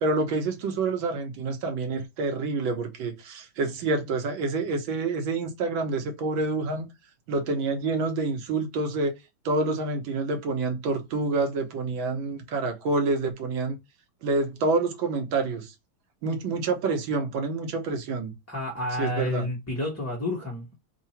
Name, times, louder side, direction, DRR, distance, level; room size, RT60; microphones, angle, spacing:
voice 1, 0.0-6.9 7.3-9.1 9.4-13.8 14.2-15.7 16.2-18.3 19.0-19.5, right 3 dB, 70° right, 1.5 m, -27 dB
voice 2, 18.5-20.8, left 2 dB, 15° left, 0.5 m, -30 dB
3.7 x 2.4 x 4.1 m
omnidirectional pair, 2.4 m